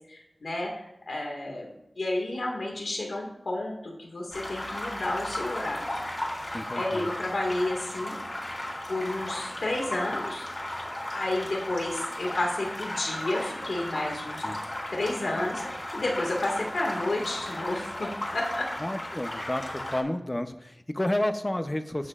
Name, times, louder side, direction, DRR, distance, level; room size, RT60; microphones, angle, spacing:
voice 1, 0.1-0.7 1.1-1.7 2.0-6.0 6.7-8.1 8.9-10.5 11.1-14.4 14.9-15.6 15.9-18.7, left 2 dB, 85° left, 0 dB, 2.0 m, -31 dB
sound 1, 4.3-20.0, left 1 dB, 40° left, 3.7 m, -35 dB
voice 2, 6.5-7.1 14.4-14.6 18.8-22.1, left 1 dB, 25° left, 8 dB, 0.7 m, -31 dB
16.0 x 7.6 x 2.5 m, 0.84 s
wide cardioid pair, 80°, 0 cm